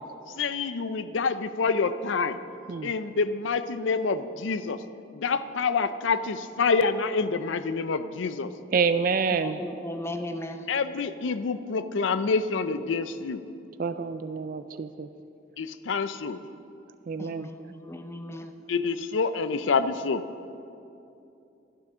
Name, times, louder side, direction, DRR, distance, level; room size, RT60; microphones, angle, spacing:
voice 1, 0.4-2.4 2.8-4.8 5.1-8.5 10.7-13.4 15.6-16.4 18.7-20.2, left 4 dB, 80° left, 12 dB, 0.5 m, -27 dB
voice 2, 8.7-9.6 13.8-15.1 17.1-17.5, right 5 dB, 45° right, 10 dB, 0.4 m, -27 dB
voice 3, 9.3-10.7 17.2-18.5, left 1 dB, 15° left, 7 dB, 0.6 m, -36 dB
12.0 x 11.5 x 6.2 m, 2.7 s
head